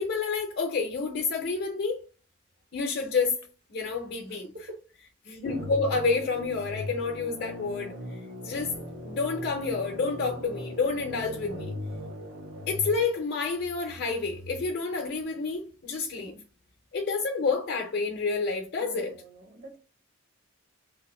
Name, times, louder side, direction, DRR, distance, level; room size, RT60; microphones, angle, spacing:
voice 1, 0.0-2.0 2.7-3.4 3.7-4.5 5.2-8.8 9.0-11.8 12.7-16.3 16.9-19.2, left 4 dB, 50° left, 0.5 m, -29 dB
sound 1, 5.4-13.0, left 1 dB, 75° right, 1.4 m, -39 dB
voice 2, 18.8-19.8, right 2 dB, 50° right, 0.7 m, -46 dB
2.9 x 2.5 x 3.0 m
head